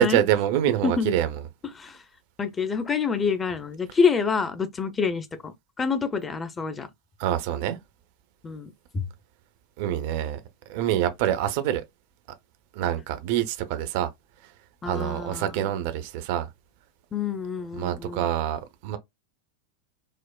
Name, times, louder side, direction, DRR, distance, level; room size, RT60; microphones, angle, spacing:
voice 1, 0.0-1.4 7.2-7.8 9.8-10.4 10.7-11.8 12.7-14.1 14.4-14.5 14.8-16.5 17.7-19.0, right 11 dB, 50° right, 0.5 m, -25 dB
voice 2, 0.8-1.1 1.8-2.0 2.4-6.9 8.4-9.1 14.8-15.5 17.1-18.3, left 5 dB, 20° left, 0.6 m, -27 dB
4.9 x 2.0 x 2.2 m
figure-of-eight pair, 90°, 0 cm